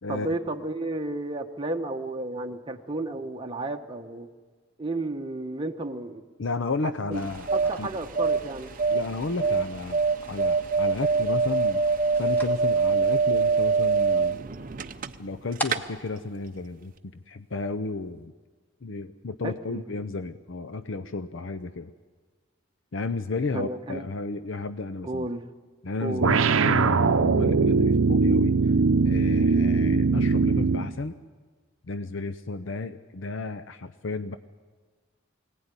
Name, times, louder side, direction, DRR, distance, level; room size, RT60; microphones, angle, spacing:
voice 1, 0.1-4.3 4.8-6.2 6.8-8.7 19.4-19.8 23.5-24.1 25.0-25.5 26.0-26.3, right 2 dB, 25° right, 3 dB, 1.1 m, -32 dB
voice 2, 6.4-7.5 7.8-7.9 8.9-10.0 10.3-11.8 12.2-14.4 15.2-18.3 18.8-21.9 22.9-25.3 25.8-28.6 29.0-31.2 31.9-34.4, left 3 dB, 70° left, 10 dB, 0.7 m, -33 dB
sound 1, 7.1-17.5, equal, 10° left, 2.1 m, -44 dB
sound 2, 7.1-15.4 15.6-15.8, right 4 dB, 45° right, 0.7 m, -24 dB
sound 3, 26.2-30.9, right 4 dB, 85° right, 0.6 m, -21 dB
23.0 x 17.5 x 9.8 m, 1.4 s
head